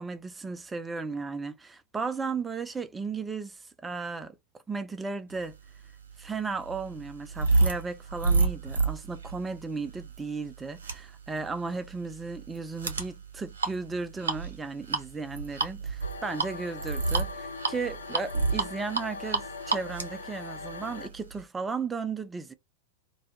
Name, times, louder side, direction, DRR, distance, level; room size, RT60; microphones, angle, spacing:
voice 1, 0.0-4.3 4.7-5.5 6.2-22.5, right 4 dB, 15° right, 0.3 m, -35 dB
sound 1, 5.7-21.4, right 3 dB, 70° right, 0.6 m, -30 dB
sound 2, 16.0-21.1, left 4 dB, 70° left, 0.4 m, -41 dB
2.3 x 2.1 x 2.7 m
figure-of-eight pair, 90°, 0 cm